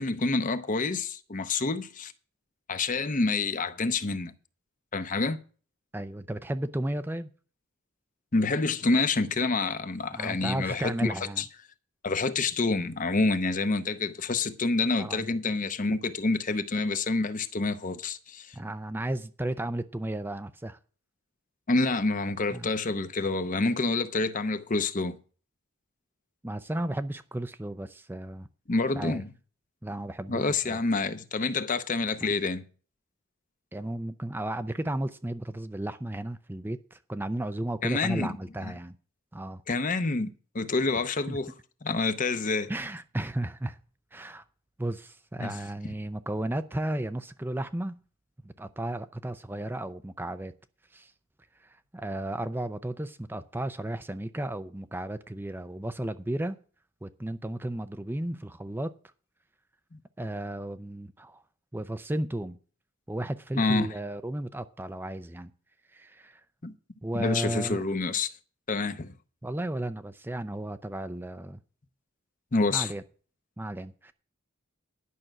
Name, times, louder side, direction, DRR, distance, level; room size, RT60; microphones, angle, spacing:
voice 1, 0.0-2.1 2.7-4.3 4.9-5.4 8.3-11.5 12.0-18.6 21.7-25.2 28.7-29.3 30.3-32.6 37.8-38.4 38.6-38.7 39.7-41.5 41.8-42.7 45.4-45.6 59.9-60.0 63.6-63.9 66.6-66.7 67.1-68.3 68.7-69.1 72.5-72.9, left 3 dB, 40° left, 0.8 m, -28 dB
voice 2, 5.9-7.3 10.1-11.4 15.0-15.3 18.5-20.8 22.5-22.7 26.4-28.5 28.9-29.2 29.8-30.4 30.7-30.8 32.2-32.3 33.7-38.9 39.3-39.6 40.9-41.4 42.7-43.8 44.1-44.4 44.8-48.0 48.4-50.5 50.9-51.1 51.6-56.6 57.0-58.9 60.2-61.4 61.7-62.6 63.1-65.5 65.9-66.4 67.0-67.8 69.4-71.6 72.7-73.0 73.6-74.1, right 1 dB, 10° right, 0.5 m, -34 dB
11.0 x 6.0 x 7.7 m
head